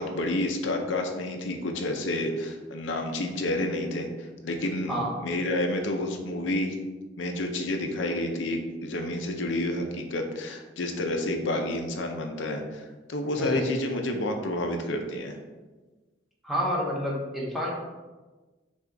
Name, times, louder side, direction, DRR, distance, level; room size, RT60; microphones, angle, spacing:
voice 1, 0.0-6.8 7.2-15.4, left 1 dB, 75° left, 3 dB, 0.5 m, -30 dB
voice 2, 13.4-13.7 16.4-17.7, equal, ahead, -4 dB, 0.9 m, -29 dB
5.8 x 2.4 x 3.7 m, 1.2 s
head